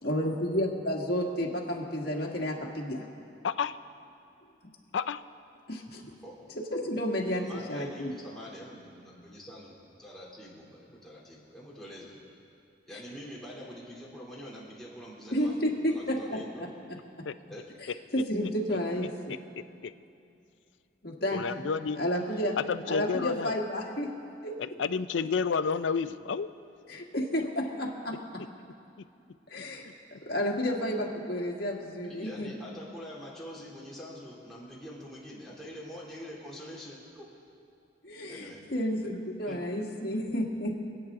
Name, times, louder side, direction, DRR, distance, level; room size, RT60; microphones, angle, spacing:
voice 1, 0.0-3.1 5.7-6.0 6.7-8.1 9.2-9.3 15.3-16.7 18.1-19.4 21.0-21.7 22.0-22.6 22.9-24.1 24.4-24.5 26.9-28.4 29.5-29.8 30.1-32.5 38.0-40.8, equal, 55° left, -1 dB, 1.8 m, -31 dB
voice 2, 3.4-3.8 4.9-5.2 17.2-17.3 19.8-19.9 21.3-22.0 22.7-23.5 24.6-26.5, left 5 dB, 80° left, 13 dB, 0.4 m, -30 dB
voice 3, 7.4-12.2 12.9-16.7 17.5-17.7 32.1-37.3 38.3-38.6 39.5-39.6, equal, ahead, -6 dB, 2.8 m, -45 dB
26.5 x 9.0 x 3.7 m, 2.6 s
head